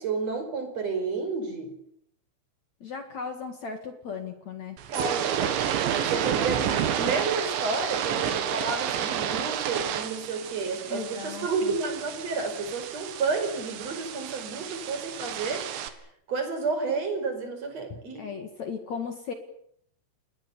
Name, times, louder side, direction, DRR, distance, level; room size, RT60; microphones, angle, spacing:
voice 1, 0.0-1.8 4.9-5.6 5.9-6.7 7.0-15.7 16.3-18.2, right 4 dB, 35° right, 6 dB, 5.8 m, -31 dB
voice 2, 2.8-4.8 10.9-11.8 17.9-19.3, left 5 dB, 50° left, 6 dB, 2.3 m, -37 dB
sound 1, 4.8-15.9, right 9 dB, 70° right, 4.0 m, -30 dB
29.0 x 21.0 x 7.0 m, 0.69 s
omnidirectional pair, 5.7 m